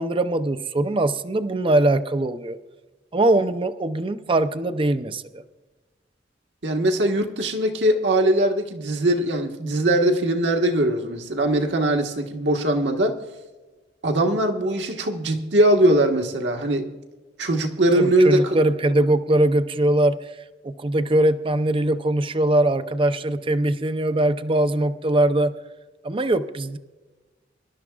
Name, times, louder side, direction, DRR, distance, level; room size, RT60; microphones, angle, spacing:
voice 1, 0.0-2.6 3.1-5.4 17.9-20.3 20.6-25.5 26.0-26.8, right 1 dB, 30° right, 11 dB, 0.5 m, -21 dB
voice 2, 6.6-13.2 14.0-16.9 17.4-18.6, right 1 dB, 75° right, 3 dB, 1.5 m, -21 dB
24.5 x 12.0 x 2.4 m, 1.2 s
head